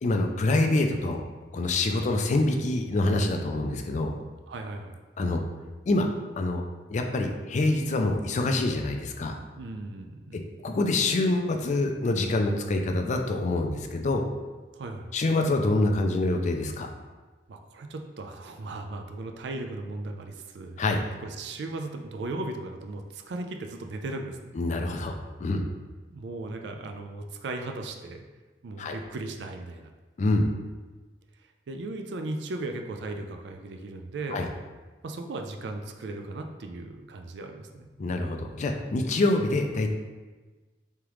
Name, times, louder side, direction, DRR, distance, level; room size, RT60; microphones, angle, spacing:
voice 1, 0.0-1.2 1.5-4.1 5.2-5.4 5.9-6.1 6.4-6.6 6.9-9.3 10.6-14.3 15.1-16.9 20.8-21.0 24.5-25.6 28.8-29.0 30.2-30.5 34.3-34.5 38.0-39.9, left 2 dB, 45° left, 4 dB, 0.4 m, -26 dB
voice 2, 4.5-5.0 9.6-10.4 14.8-15.1 17.5-20.8 21.2-24.5 26.1-28.2 28.6-29.9 31.7-34.4 35.0-37.9, right 2 dB, 75° right, 4 dB, 0.4 m, -37 dB
3.5 x 3.3 x 3.0 m, 1.3 s
head